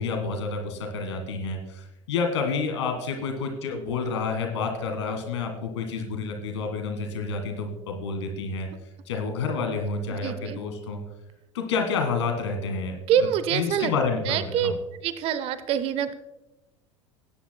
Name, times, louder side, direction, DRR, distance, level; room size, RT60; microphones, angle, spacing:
voice 1, 0.0-8.7 9.0-11.0 11.5-14.7, left 4 dB, 65° left, 4 dB, 1.7 m, -29 dB
voice 2, 10.2-10.6 13.1-13.9 14.3-14.7 15.0-16.1, right 9 dB, 35° right, 14 dB, 0.7 m, -25 dB
20.0 x 10.0 x 2.2 m, 1.0 s
figure-of-eight pair, 75°, 16 cm